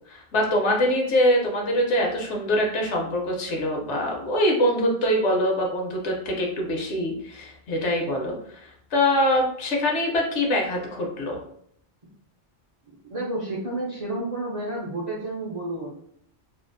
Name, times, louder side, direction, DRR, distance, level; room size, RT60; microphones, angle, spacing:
voice 1, 0.1-11.4, left 1 dB, 80° left, 0 dB, 1.1 m, -24 dB
voice 2, 12.9-15.9, right 2 dB, 45° right, -5 dB, 0.5 m, -31 dB
2.6 x 2.5 x 2.5 m, 0.65 s
omnidirectional pair, 1.2 m